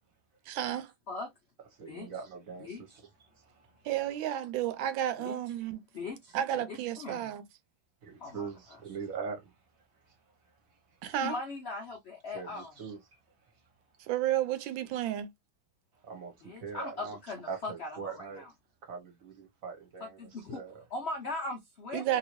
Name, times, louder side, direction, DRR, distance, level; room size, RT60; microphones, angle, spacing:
voice 1, 0.5-0.9 3.8-5.8 6.3-7.4 11.0-11.3 14.1-15.3 21.9-22.2, right 11 dB, 80° right, 1.3 m, -32 dB
voice 2, 1.8-3.8 8.0-9.5 10.1-10.2 12.3-13.2 16.0-17.2 17.5-18.4 18.8-20.8, right 5 dB, 50° right, 1.2 m, -42 dB
voice 3, 2.6-3.0 5.2-5.4 5.9-6.4 6.7-7.3 8.2-8.5 11.2-12.7 16.4-18.5 20.2-20.6 20.9-22.2, left 3 dB, 80° left, 0.5 m, -39 dB
3.0 x 2.7 x 2.9 m
omnidirectional pair, 2.1 m